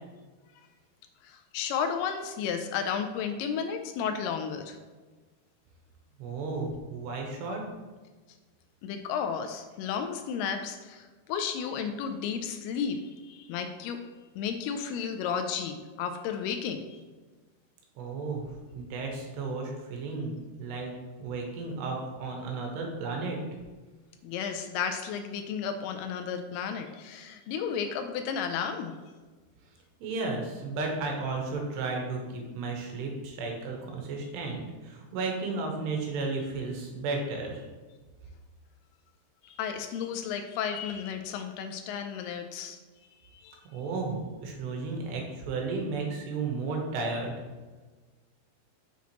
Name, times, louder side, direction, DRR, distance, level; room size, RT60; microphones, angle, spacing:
voice 1, 1.2-4.8 8.8-14.0 14.4-17.0 24.2-28.9 39.4-42.8 43.3-43.6, left 7 dB, 85° left, 6 dB, 2.4 m, -33 dB
voice 2, 6.2-7.6 18.0-18.4 18.7-20.9 21.2-23.4 30.0-37.6 43.7-47.4, right 3 dB, 90° right, 1 dB, 3.3 m, -33 dB
7.1 x 5.9 x 3.0 m, 1.3 s
omnidirectional pair, 4.7 m